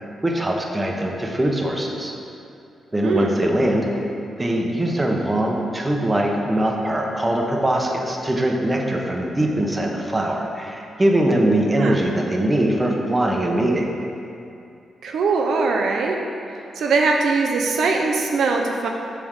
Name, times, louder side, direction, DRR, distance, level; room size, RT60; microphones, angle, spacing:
voice 1, 0.0-2.1 2.9-4.1 4.4-13.9, right 1 dB, 20° right, 0 dB, 0.9 m, -22 dB
voice 2, 3.0-3.3 11.8-12.0 15.0-16.2 16.8-18.9, right 4 dB, 75° right, 1 dB, 0.6 m, -21 dB
7.1 x 3.5 x 6.4 m, 2.6 s
cardioid pair, 70°, 0 cm